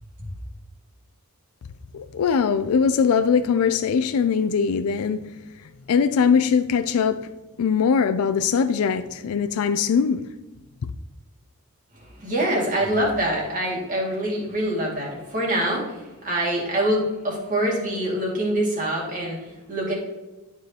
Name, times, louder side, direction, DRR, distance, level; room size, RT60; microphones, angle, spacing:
voice 1, 1.9-5.3 5.9-7.3 7.6-10.2 10.8-10.9, left 6 dB, 70° left, 0.4 m, -21 dB
voice 2, 12.0-19.9, right 1 dB, 35° right, 2.3 m, -25 dB
11.5 x 4.8 x 2.9 m
head